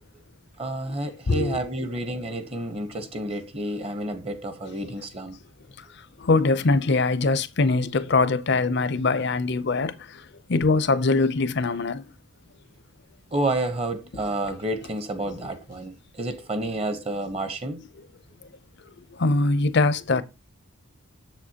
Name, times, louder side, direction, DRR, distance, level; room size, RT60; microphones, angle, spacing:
voice 1, 0.6-5.4 13.3-17.8, right 1 dB, 25° right, 0.9 m, -30 dB
voice 2, 1.3-1.6 6.2-10.2 10.5-12.0 14.1-14.2 19.1-20.2, left 3 dB, 50° left, 0.5 m, -22 dB
7.4 x 7.1 x 2.8 m
head